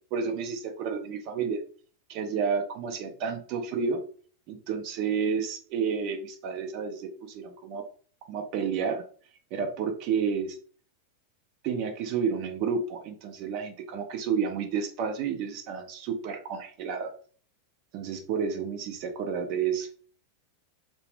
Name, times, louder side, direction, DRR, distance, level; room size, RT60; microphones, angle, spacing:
voice 1, 0.1-1.6 2.1-4.0 4.5-7.9 8.2-9.0 9.5-10.6 11.6-17.1 17.9-19.9, right 6 dB, 40° right, 5 dB, 0.4 m, -30 dB
2.7 x 2.0 x 3.2 m, 0.43 s
figure-of-eight pair, 90°, 0 cm